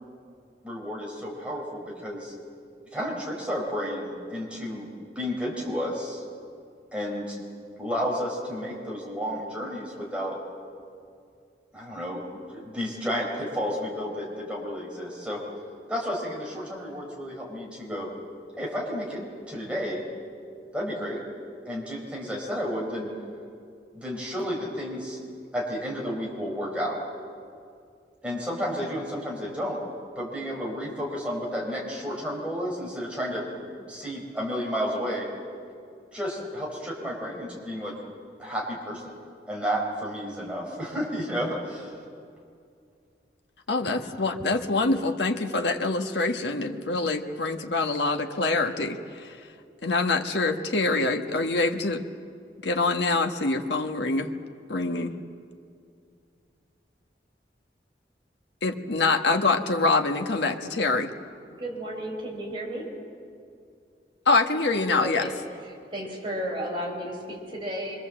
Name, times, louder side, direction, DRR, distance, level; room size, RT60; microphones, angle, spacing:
voice 1, 0.6-2.3 2.9-4.9 5.1-6.2 6.9-7.4 7.8-10.4 11.7-12.2 12.5-15.4 15.9-18.1 18.6-19.2 19.5-20.0 20.7-21.2 21.7-23.1 23.9-25.2 25.5-27.0 28.2-29.8 30.2-35.3 36.1-37.9 38.4-39.1 39.5-41.9, equal, 5° right, -3 dB, 4.7 m, -31 dB
voice 2, 43.7-49.4 49.8-52.0 52.6-54.3 54.7-55.2 58.6-61.1 64.3-65.2, left 3 dB, 80° left, 4 dB, 1.4 m, -25 dB
voice 3, 61.6-62.9 65.0-65.3 65.6-67.9, equal, 30° right, -1 dB, 4.9 m, -33 dB
25.0 x 24.5 x 7.7 m, 2.4 s
head